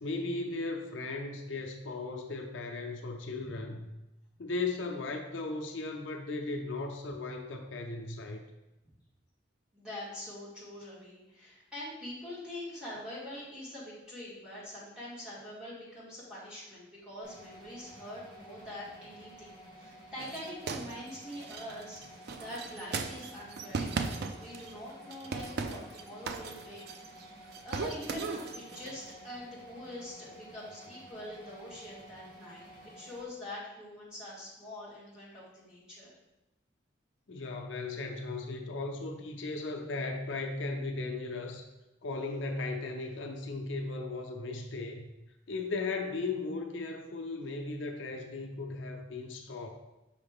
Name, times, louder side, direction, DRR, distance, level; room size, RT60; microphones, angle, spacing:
voice 1, 0.0-3.9 4.4-8.4 37.3-41.6 42.0-45.0 45.5-49.7, left 3 dB, 75° left, 3 dB, 0.6 m, -36 dB
voice 2, 9.7-27.3 27.6-36.1, left 1 dB, 5° right, -8 dB, 2.0 m, -44 dB
sound 1, 17.2-33.2, right 1 dB, 80° right, 1.7 m, -52 dB
sound 2, 20.2-24.8 25.1-27.2 27.5-29.0, right 4 dB, 55° right, 0.4 m, -37 dB
5.5 x 4.8 x 3.5 m, 1.0 s
head